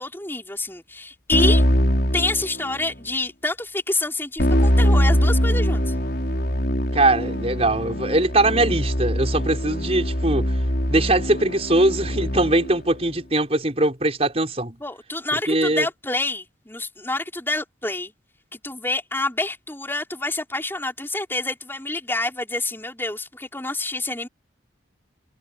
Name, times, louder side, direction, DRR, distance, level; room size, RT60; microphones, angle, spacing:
voice 1, 0.0-1.6 2.1-5.9 14.8-18.1 18.5-24.3, left 2 dB, 15° left, 4.4 m, -27 dB
Keyboard (musical), 1.3-3.0 4.4-12.8, equal, 60° left, 5.7 m, -22 dB
voice 2, 6.9-10.5 10.9-14.8 15.5-15.9, right 2 dB, 35° right, 5.7 m, -21 dB
head